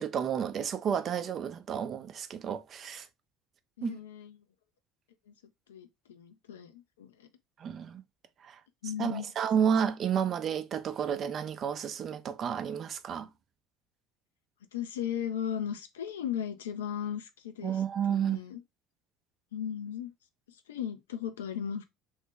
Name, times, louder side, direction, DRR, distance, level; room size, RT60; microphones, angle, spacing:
voice 1, 0.0-3.1 3.8-4.0 7.6-8.0 8.4-8.6 9.0-13.3 17.6-18.4, right 8 dB, 45° right, 0.5 m, -31 dB
voice 2, 3.8-4.4 5.3-5.4 5.7-7.3 8.8-9.3 14.7-17.8 18.1-18.6 19.5-20.1 20.5-21.8, left 9 dB, 80° left, 0.5 m, -37 dB
3.0 x 2.6 x 3.5 m
hypercardioid pair, 65°, 0 cm